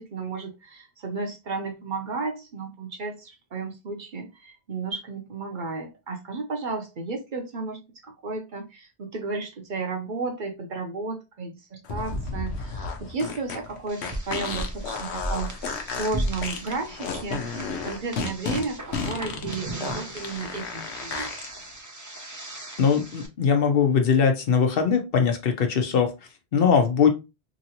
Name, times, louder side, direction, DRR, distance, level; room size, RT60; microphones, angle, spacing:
voice 1, 0.0-21.5, right 3 dB, 55° right, 3 dB, 0.7 m, -33 dB
sound 1, 11.8-21.5, left 4 dB, 90° left, 1.0 m, -32 dB
sound 2, 13.9-23.3, right 1 dB, 20° right, 0.5 m, -36 dB
voice 2, 22.8-26.1 26.5-27.1, left 6 dB, 65° left, 5 dB, 0.8 m, -21 dB
2.9 x 2.7 x 2.7 m, 0.25 s
omnidirectional pair, 1.1 m